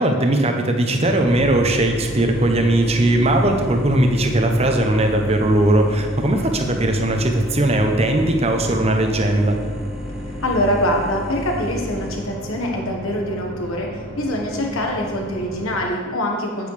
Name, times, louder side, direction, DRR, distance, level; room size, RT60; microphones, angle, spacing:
voice 1, 0.0-9.6, right 1 dB, 30° right, 4 dB, 0.7 m, -18 dB
sound 1, 0.8-15.9, equal, 55° right, 1.3 m, -35 dB
sound 2, 1.3-12.2, equal, 5° right, 0.4 m, -32 dB
voice 2, 10.4-16.7, equal, 75° left, 1 dB, 1.4 m, -24 dB
8.6 x 8.4 x 3.4 m, 1.5 s
head